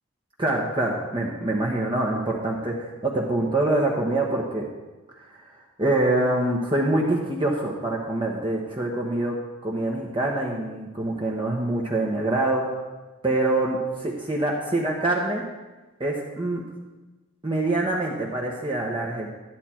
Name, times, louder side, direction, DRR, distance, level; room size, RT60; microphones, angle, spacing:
voice 1, 0.4-4.7 5.2-5.5 5.8-9.3 9.6-12.6 13.2-13.8 14.2-15.4 16.0-16.6 17.4-19.3, right 2 dB, 25° right, -3 dB, 1.2 m, -25 dB
12.5 x 10.5 x 4.5 m, 1.2 s
head